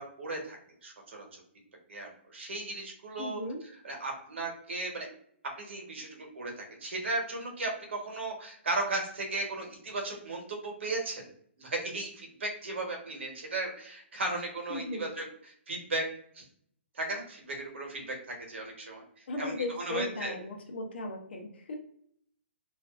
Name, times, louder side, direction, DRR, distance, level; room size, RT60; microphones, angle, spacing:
voice 1, 0.0-1.4 1.9-3.4 3.8-5.1 5.6-11.2 11.6-15.2 15.7-16.1 16.3-16.4 16.9-20.3, right 2 dB, 70° right, 1 dB, 1.0 m, -36 dB
voice 2, 3.2-3.6 14.7-15.1 19.3-21.7, left 2 dB, 60° left, 2 dB, 0.6 m, -36 dB
2.5 x 2.3 x 2.3 m, 0.65 s
hypercardioid pair, 175°, 7 cm